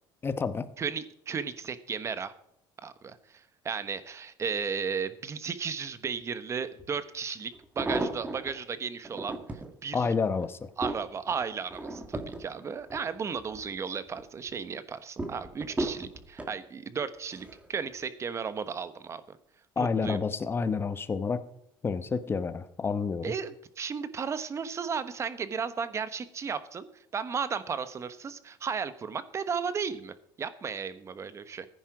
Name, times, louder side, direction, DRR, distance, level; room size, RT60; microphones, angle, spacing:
voice 1, 0.2-0.7 9.9-10.7 19.8-21.4 21.8-23.3, left 5 dB, 25° left, 12 dB, 1.0 m, -29 dB
voice 2, 0.8-2.3 2.8-9.4 9.8-10.1 10.8-19.4 19.8-20.2 23.2-31.7, right 6 dB, 30° right, 13 dB, 1.1 m, -34 dB
sound 1, 6.8-6.9 7.5-8.5 9.0-9.7 10.3-13.7 14.1-14.5 15.2-16.6 17.3-17.7 18.0-18.1, right 2 dB, 15° right, 1.9 m, -35 dB
15.0 x 9.9 x 4.9 m, 0.74 s
cardioid pair, 125°, 9 cm